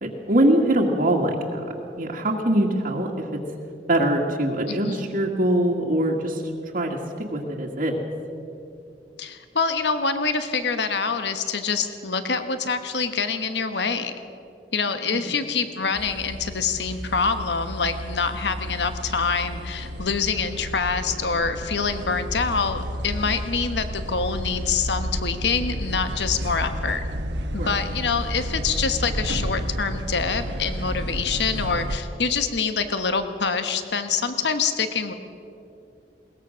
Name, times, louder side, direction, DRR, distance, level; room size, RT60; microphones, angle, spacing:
voice 1, 0.0-3.4 3.9-6.4 6.7-7.0 7.3-8.0 15.1-15.2 27.6-27.7, right 1 dB, 50° right, -1 dB, 1.9 m, -23 dB
voice 2, 4.7-5.1 9.2-14.1 14.7-27.0 27.5-35.1, left 5 dB, 70° left, 9 dB, 1.3 m, -26 dB
sound 1, 15.9-32.0, equal, 90° right, 1.2 m, -31 dB
21.5 x 19.0 x 6.3 m, 2.6 s
head